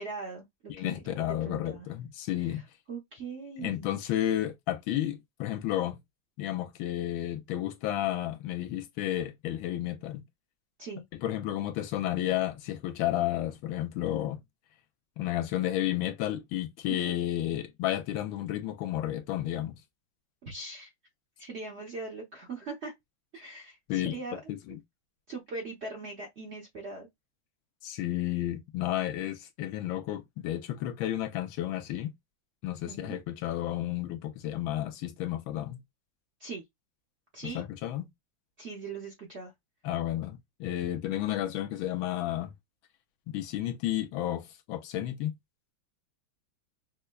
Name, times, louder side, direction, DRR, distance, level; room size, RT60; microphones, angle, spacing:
voice 1, 0.0-1.9 2.4-4.0 10.8-11.0 16.9-17.2 20.4-20.9 21.4-22.9 23.3-24.4 25.3-27.1 32.9-33.2 36.4-36.6 37.3-37.6 38.6-39.5, right 3 dB, 50° right, 0.8 m, -41 dB
voice 2, 0.7-2.6 3.6-6.0 6.4-10.2 11.2-14.4 15.2-19.8 23.9-24.2 24.5-24.8 27.8-32.1 32.6-35.8 37.4-38.1 39.8-42.5 43.3-45.3, left 13 dB, 80° left, 1.4 m, -32 dB
5.4 x 2.2 x 2.2 m
omnidirectional pair, 2.2 m